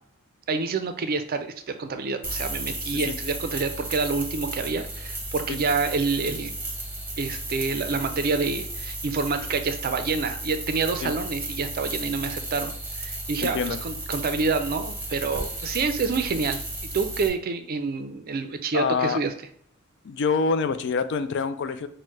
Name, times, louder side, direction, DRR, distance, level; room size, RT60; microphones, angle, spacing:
voice 1, 0.5-6.5 7.2-12.7 13.0-16.6 16.9-19.3, right 4 dB, 45° right, 8 dB, 0.4 m, -27 dB
sound 1, 2.2-17.3, right 1 dB, 10° right, 0.9 m, -34 dB
voice 2, 13.4-13.8 18.7-19.2 20.0-21.9, left 5 dB, 55° left, 11 dB, 0.4 m, -26 dB
4.4 x 2.1 x 4.6 m, 0.65 s
head